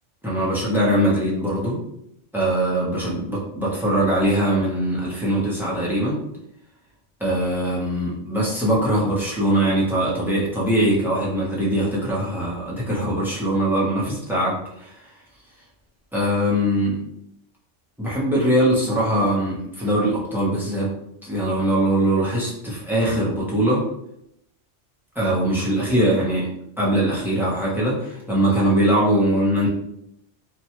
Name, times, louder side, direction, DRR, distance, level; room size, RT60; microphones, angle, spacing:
voice 1, 0.2-1.8 2.3-6.2 7.2-15.0 16.1-17.0 18.0-20.9 21.2-23.8 25.1-26.5 26.8-29.7, right 1 dB, ahead, -6 dB, 0.6 m, -22 dB
2.9 x 2.2 x 2.9 m, 0.78 s
omnidirectional pair, 1.2 m